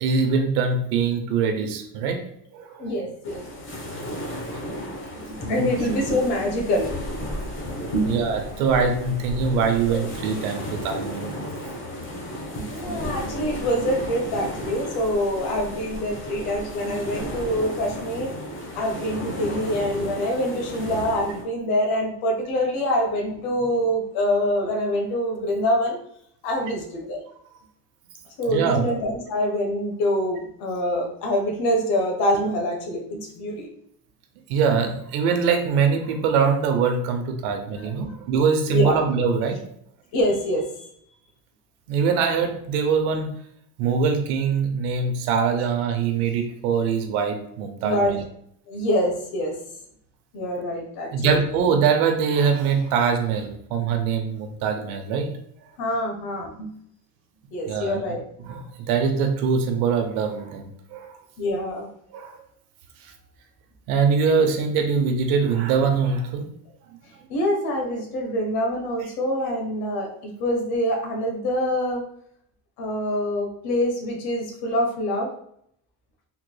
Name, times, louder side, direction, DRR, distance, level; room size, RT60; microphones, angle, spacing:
voice 1, 0.0-2.2 2.5-2.9 5.6-5.7 8.1-11.5 28.4-28.9 34.5-39.6 41.9-43.3 43.8-48.2 51.1-55.3 57.7-58.0 58.4-61.1 62.1-62.4 63.9-66.5, right 5 dB, 90° right, 5 dB, 0.8 m, -23 dB
voice 2, 2.8-3.4 5.1-6.9 7.2-7.3 7.9-8.2 9.9-10.0 11.9-12.0 12.5-18.3 18.7-26.0 26.4-27.2 28.4-33.7 37.8-37.9 38.7-39.0 40.1-40.9 47.8-48.2 48.7-49.6 50.3-51.4 55.8-56.7 57.5-58.2 61.4-61.9 67.3-72.0 72.8-75.3, equal, 60° left, 1 dB, 1.2 m, -25 dB
sound 1, 3.2-21.4, equal, 30° left, 0.8 m, -34 dB
3.8 x 3.0 x 2.2 m, 0.69 s
supercardioid pair, 115°, 42 cm